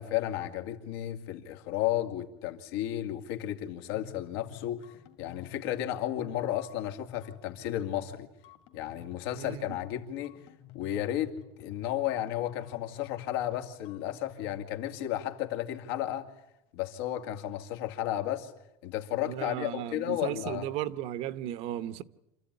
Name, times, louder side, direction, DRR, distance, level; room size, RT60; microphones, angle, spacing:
voice 1, 0.0-4.8 5.2-8.3 8.7-10.4 10.7-16.3 16.7-18.5 18.8-20.7, left 12 dB, 80° left, 2.4 m, -33 dB
sound 1, 3.9-14.6, left 13 dB, 50° left, 2.4 m, -51 dB
voice 2, 9.4-9.8 19.2-22.0, right 12 dB, 55° right, 0.9 m, -35 dB
27.5 x 14.5 x 9.8 m
cardioid pair, 155°, 13 cm